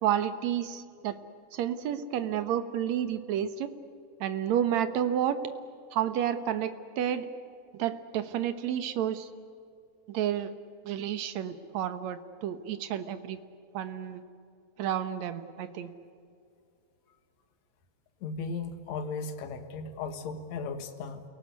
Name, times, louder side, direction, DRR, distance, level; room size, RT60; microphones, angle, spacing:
voice 1, 0.0-1.2 1.5-3.7 4.2-5.4 5.9-7.3 7.7-9.3 10.1-10.5 10.8-13.4 13.7-14.2 14.8-15.9, right 10 dB, 65° right, 10 dB, 2.4 m, -30 dB
voice 2, 18.2-21.2, left 4 dB, 65° left, 7 dB, 2.8 m, -36 dB
29.0 x 18.0 x 9.7 m, 2.5 s
omnidirectional pair, 3.6 m